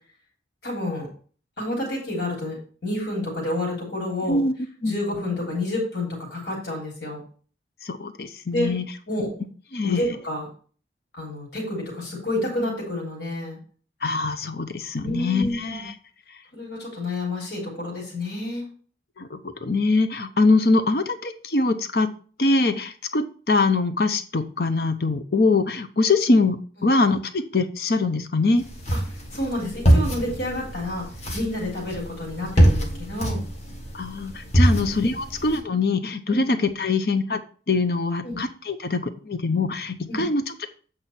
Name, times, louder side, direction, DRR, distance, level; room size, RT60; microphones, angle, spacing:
voice 1, 0.6-1.1 1.6-4.4 4.8-7.2 8.5-8.7 9.1-9.3 9.8-10.5 11.2-13.6 15.0-15.9 16.5-18.7 28.9-29.0 29.3-31.1 31.3-33.4 36.3-36.4 38.2-38.4 40.1-40.2, left 1 dB, 80° left, -4 dB, 3.4 m, -29 dB
voice 2, 7.8-8.8 9.7-10.0 14.0-15.9 19.2-22.1 22.4-28.6 33.9-37.4 37.7-40.7, left 3 dB, 60° left, 9 dB, 0.7 m, -23 dB
sound 1, 28.6-35.6, right 1 dB, 40° left, 1.8 m, -24 dB
8.3 x 5.0 x 4.3 m, 0.40 s
head